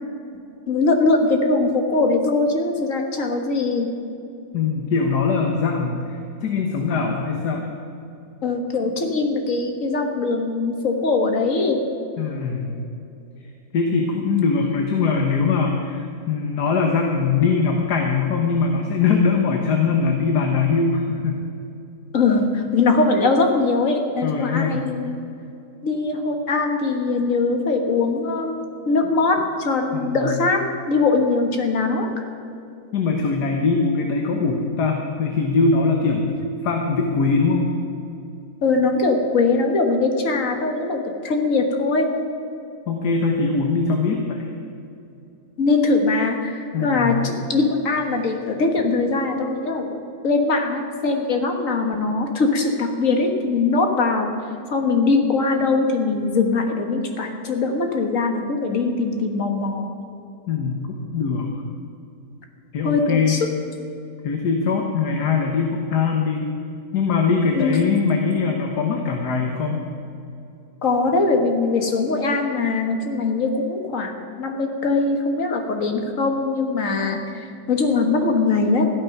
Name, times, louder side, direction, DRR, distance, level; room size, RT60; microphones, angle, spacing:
voice 1, 0.7-3.9 8.4-11.8 22.1-25.2 25.8-28.6 28.9-30.6 30.9-32.1 38.6-42.1 45.6-50.0 50.2-54.3 54.7-59.9 62.8-63.5 67.5-67.9 70.8-74.1 74.4-78.9, left 3 dB, 50° left, 4 dB, 1.9 m, -21 dB
voice 2, 4.5-7.7 12.2-12.7 13.7-21.4 24.2-24.8 29.9-30.4 32.9-36.4 36.6-37.7 42.9-44.5 46.7-47.2 60.5-60.8 61.1-61.5 62.7-63.4 64.2-66.5 66.9-69.8, left 4 dB, 75° left, 2 dB, 1.7 m, -21 dB
14.0 x 12.0 x 5.9 m, 2.7 s
omnidirectional pair, 1.8 m